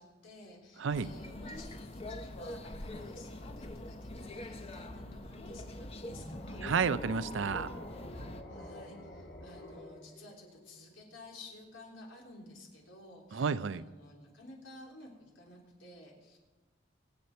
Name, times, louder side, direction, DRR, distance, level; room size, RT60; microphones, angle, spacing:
voice 1, 0.0-6.6 8.1-16.4, left 2 dB, 85° left, -1 dB, 3.6 m, -53 dB
voice 2, 0.8-1.1 6.6-7.7 13.3-13.8, right 5 dB, 80° right, 15 dB, 0.5 m, -31 dB
sound 1, 0.9-8.4, left 1 dB, 30° left, 0.8 m, -44 dB
sound 2, 5.9-11.1, left 1 dB, 65° left, 2.8 m, -47 dB
24.0 x 8.3 x 4.4 m, 1.3 s
head